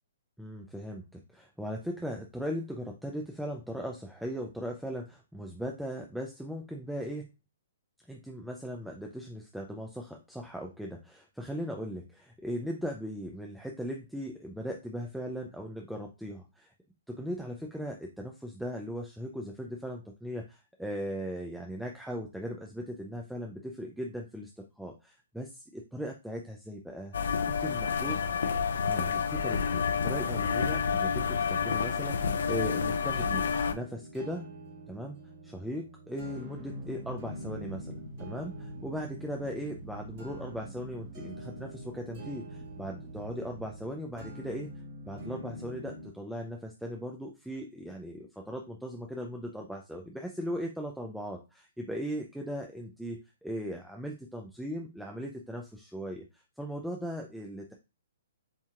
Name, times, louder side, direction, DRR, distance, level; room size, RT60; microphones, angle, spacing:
voice 1, 0.4-7.3 8.1-16.7 17.1-24.5 24.8-27.1 27.5-28.2 28.9-33.4 33.7-34.5 34.9-35.2 35.4-44.7 45.0-57.7, equal, ahead, 1 dB, 0.6 m, -38 dB
sound 1, 27.1-33.7, left 6 dB, 75° left, 0.6 m, -29 dB
sound 2, 30.2-46.2, equal, 45° right, 2.2 m, -46 dB
sound 3, 36.2-44.9, right 1 dB, 20° right, 1.3 m, -46 dB
7.2 x 2.8 x 2.5 m, 0.27 s
hypercardioid pair, 140°, 0 cm